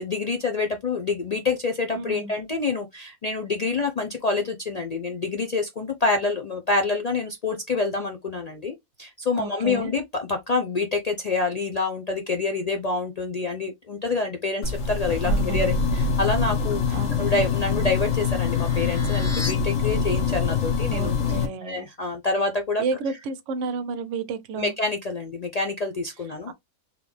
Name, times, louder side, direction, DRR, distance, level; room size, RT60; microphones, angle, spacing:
voice 1, 0.0-22.8 24.6-26.5, left 3 dB, 85° left, 0.3 m, -27 dB
voice 2, 1.9-2.3 9.4-9.9 15.2-15.8 16.9-17.2 20.9-21.9 22.8-24.7 26.5-26.6, right 4 dB, 65° right, 0.9 m, -31 dB
sound 1, 14.6-21.5, left 5 dB, 60° left, 1.5 m, -24 dB
sound 2, 17.3-19.5, left 2 dB, 15° left, 0.5 m, -38 dB
3.9 x 3.0 x 3.4 m
omnidirectional pair, 1.6 m